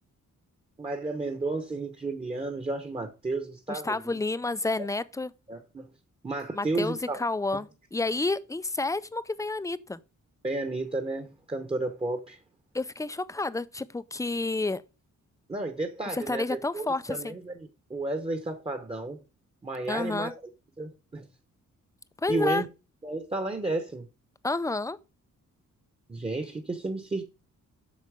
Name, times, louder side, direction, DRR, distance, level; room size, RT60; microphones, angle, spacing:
voice 1, 0.8-4.2 5.5-5.9 6.2-7.2 10.4-12.4 15.5-17.5 17.9-19.2 19.6-20.3 20.8-21.2 22.3-22.7 23.0-24.1 26.1-27.2, right 2 dB, 20° right, 1.1 m, -32 dB
voice 2, 3.7-5.3 6.5-10.0 12.7-14.8 16.1-17.3 19.9-20.3 22.2-22.6 24.4-25.0, left 3 dB, 10° left, 0.4 m, -30 dB
8.3 x 6.5 x 4.9 m
wide cardioid pair, 155°, 31 cm